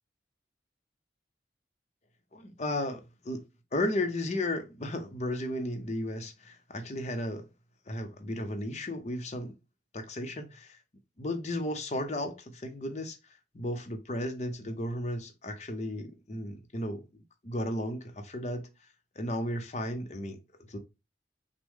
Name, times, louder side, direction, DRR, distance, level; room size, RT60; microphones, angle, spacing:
voice 1, 2.3-3.4 3.7-7.4 7.9-9.5 9.9-10.8 11.2-13.2 13.5-17.0 17.4-18.7 19.2-20.4 20.7-20.8, left 1 dB, 40° left, 0.7 m, -34 dB
6.1 x 2.2 x 3.5 m
head